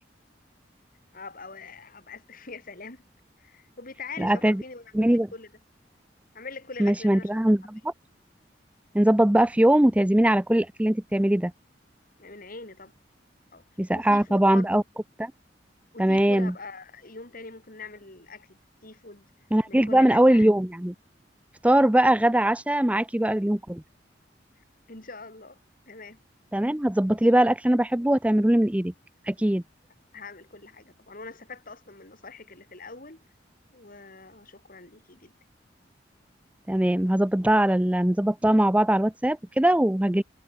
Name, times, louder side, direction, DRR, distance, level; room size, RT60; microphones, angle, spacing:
voice 1, 1.1-3.1 3.4-5.5 6.3-7.4 12.2-12.9 13.5-13.6 13.9-14.8 15.9-19.3 19.7-20.5 24.6-25.6 25.9-26.2 27.1-27.2 30.1-33.2 33.7-35.3, left 3 dB, 50° left, 4.2 m, -43 dB
voice 2, 4.2-4.6 4.9-5.3 6.8-7.9 8.9-11.5 13.8-14.8 15.2-15.3 16.0-16.5 19.5-20.9 21.6-23.8 26.5-28.9 29.3-29.6 36.7-40.2, right 1 dB, 5° right, 0.5 m, -21 dB
head